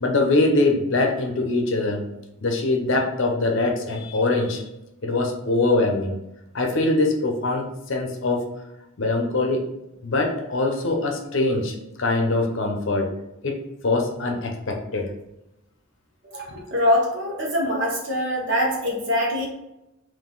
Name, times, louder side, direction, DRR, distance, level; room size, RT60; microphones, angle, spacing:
voice 1, 0.0-2.0 2.4-4.6 5.0-6.2 6.5-8.5 9.0-9.7 10.0-13.1 13.4-13.5 13.8-15.1 16.5-16.6, left 2 dB, 60° left, 2 dB, 0.7 m, -23 dB
voice 2, 16.3-19.5, left 1 dB, 55° right, -2 dB, 1.1 m, -23 dB
3.7 x 2.6 x 3.9 m, 0.90 s
head